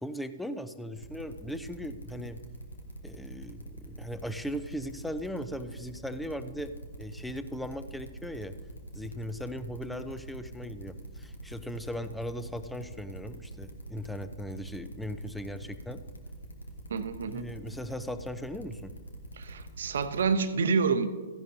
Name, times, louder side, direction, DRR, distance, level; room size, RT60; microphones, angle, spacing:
voice 1, 0.0-2.4 3.0-8.6 8.9-16.0 17.3-18.9, equal, 5° left, 11 dB, 0.5 m, -38 dB
sound 1, 1.0-20.3, right 1 dB, 85° left, 1.3 m, -44 dB
voice 2, 16.9-17.5 19.4-21.1, right 5 dB, 70° right, 10 dB, 0.8 m, -28 dB
15.0 x 10.5 x 2.8 m, 1.5 s
hypercardioid pair, 120°, 0 cm